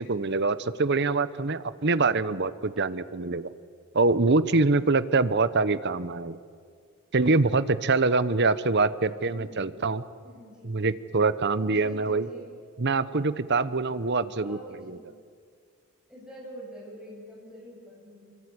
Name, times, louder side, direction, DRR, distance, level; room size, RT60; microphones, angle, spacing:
voice 1, 0.0-3.5 3.9-6.4 7.1-10.0 10.6-12.3 12.8-15.0, right 3 dB, 50° right, 15 dB, 0.9 m, -24 dB
voice 2, 9.3-9.8 10.2-10.8 11.6-12.5 14.3-15.1 16.1-18.3, equal, 5° right, -4 dB, 7.9 m, -46 dB
25.5 x 23.5 x 9.7 m, 2.1 s
head